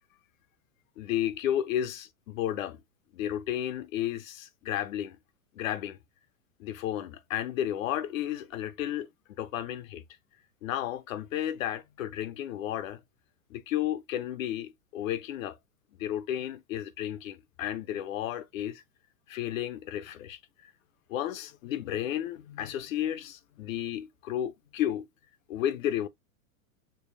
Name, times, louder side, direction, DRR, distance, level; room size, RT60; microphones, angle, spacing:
voice 1, 1.0-2.8 3.1-5.2 5.6-6.0 6.6-9.1 9.4-10.0 10.6-13.0 13.5-15.6 16.0-18.8 19.3-20.4 21.1-25.1 25.5-26.1, left 11 dB, 65° left, 0.7 m, -32 dB
5.4 x 2.1 x 3.2 m
hypercardioid pair, 110°, 43 cm